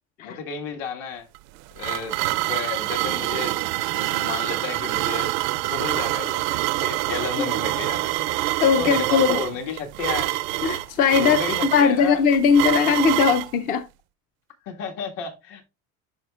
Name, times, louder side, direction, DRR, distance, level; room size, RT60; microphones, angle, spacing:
voice 1, 0.2-1.3 1.7-2.2 2.5-3.6 3.9-5.4 5.6-8.1 8.8-10.3 11.2-12.2 14.7-15.7, left 5 dB, 65° left, 1.8 m, -32 dB
sound 1, 1.3-13.5, right 19 dB, 80° right, 0.5 m, -26 dB
voice 2, 8.6-9.4 10.6-11.4 11.7-13.8, left 6 dB, 30° left, 0.4 m, -19 dB
11.5 x 4.9 x 2.4 m
cardioid pair, 175°, 32 cm